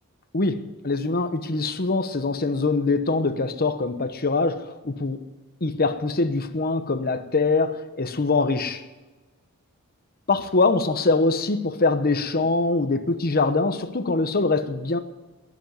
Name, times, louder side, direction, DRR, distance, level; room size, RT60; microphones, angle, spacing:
voice 1, 0.3-5.2 5.6-8.8 10.3-15.0, left 3 dB, 45° left, 1.0 m, -23 dB
19.0 x 7.3 x 9.4 m
head